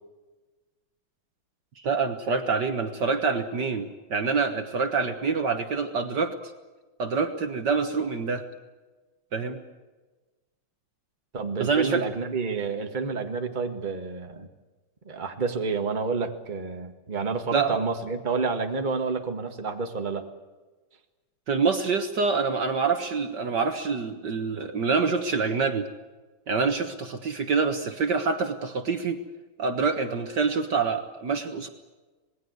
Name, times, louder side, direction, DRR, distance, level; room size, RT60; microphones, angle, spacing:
voice 1, 1.8-6.3 7.0-8.4 9.3-9.6 11.6-12.0 17.5-17.8 21.5-25.9 26.5-29.2 29.6-31.7, right 5 dB, 55° right, 7 dB, 1.8 m, -26 dB
voice 2, 11.3-14.5 15.1-20.3, right 4 dB, 25° right, 5 dB, 1.8 m, -29 dB
26.5 x 20.5 x 8.1 m, 1.2 s
omnidirectional pair, 2.4 m